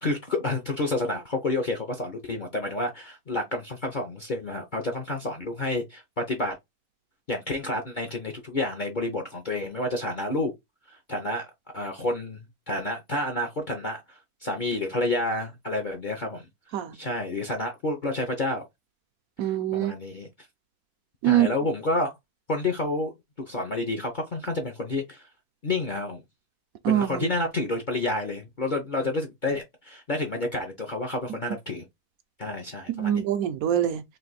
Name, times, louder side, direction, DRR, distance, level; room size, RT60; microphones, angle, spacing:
voice 1, 0.0-6.6 7.3-10.5 10.9-11.5 11.7-16.5 16.9-18.6 19.7-20.3 21.2-22.2 22.5-23.1 23.4-25.3 25.6-26.2 26.9-31.8 32.4-33.2, left 2 dB, 45° left, 0.6 m, -29 dB
voice 2, 19.4-19.9 21.2-21.5 26.8-27.3 32.9-34.0, right 11 dB, 70° right, 1.0 m, -24 dB
3.3 x 2.6 x 3.9 m
omnidirectional pair, 1.6 m